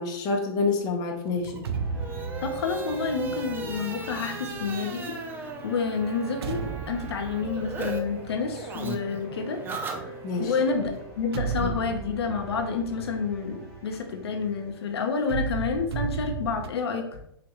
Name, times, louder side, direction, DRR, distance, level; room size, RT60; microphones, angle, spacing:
voice 1, 0.0-1.7 10.2-10.5 11.6-11.7, left 4 dB, 30° left, 1 dB, 0.7 m, -28 dB
sound 1, 1.4-8.0 8.3-10.5, right 4 dB, 15° right, 0.4 m, -37 dB
sound 2, 1.4-5.1 5.8-9.4 10.7-14.7 15.2-16.7, right 6 dB, 80° right, 0.4 m, -35 dB
sound 3, 1.7-14.9, right 1 dB, 5° left, 1.4 m, -44 dB
voice 2, 2.4-6.6 6.9-10.1 10.4-17.2, left 5 dB, 80° left, 4 dB, 0.7 m, -29 dB
3.5 x 2.9 x 2.9 m, 0.75 s
hypercardioid pair, 130°, 13 cm